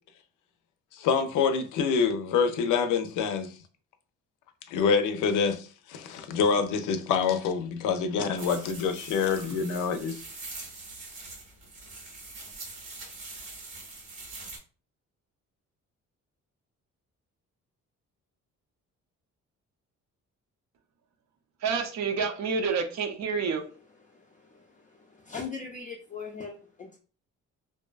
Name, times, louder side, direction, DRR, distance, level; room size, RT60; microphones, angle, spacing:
voice 1, 0.9-3.5 4.7-10.2, left 6 dB, 85° left, 0.5 m, -26 dB
sound 1, 8.4-14.6, right 3 dB, 80° right, 1.4 m, -43 dB
voice 2, 21.6-23.7, right 5 dB, 65° right, 0.5 m, -28 dB
voice 3, 24.0-27.0, left 5 dB, 25° left, 0.4 m, -41 dB
2.6 x 2.2 x 2.3 m
cardioid pair, 90°, 30 cm